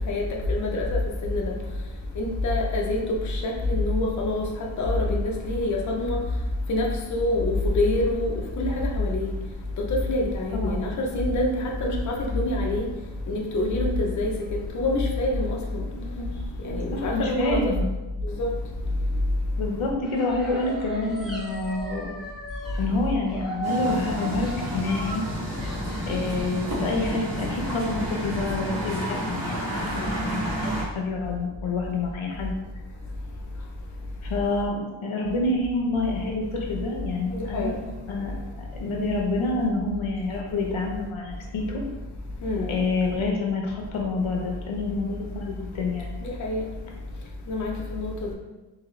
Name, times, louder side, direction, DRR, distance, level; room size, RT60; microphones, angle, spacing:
voice 1, 0.1-1.5 2.2-6.2 6.7-9.3 9.9-12.9 13.3-14.3 14.7-15.8 16.6-17.6 18.2-18.5 37.3-37.7 42.4-42.7 46.2-46.6 47.5-48.3, left 2 dB, 40° left, 0 dB, 0.5 m, -26 dB
voice 2, 10.5-10.8 15.9-16.3 16.6-17.8 19.6-22.1 22.8-25.2 26.1-32.5 34.2-37.7 38.1-41.8 42.7-46.2, left 2 dB, 90° left, 0 dB, 0.9 m, -28 dB
sound 1, 20.0-22.9 23.2-26.4, right 2 dB, ahead, 0.6 m, -36 dB
sound 2, 23.6-30.8, equal, 35° right, 0.9 m, -31 dB
3.8 x 2.8 x 3.1 m, 1.1 s
wide cardioid pair, 165°, 47 cm